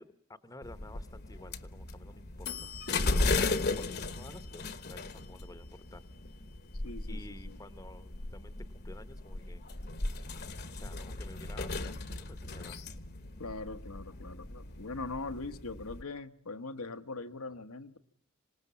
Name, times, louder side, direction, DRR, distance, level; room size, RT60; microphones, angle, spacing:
voice 1, 0.0-2.7 3.1-3.4 3.7-6.0 7.1-9.6 10.7-12.8, left 2 dB, 15° left, 12 dB, 1.0 m, -52 dB
sound 1, 0.6-16.0, left 3 dB, 45° left, 1.2 m, -36 dB
voice 2, 6.8-7.6 13.4-18.0, left 3 dB, 80° left, 9 dB, 1.3 m, -41 dB
26.5 x 19.0 x 7.0 m, 0.68 s
head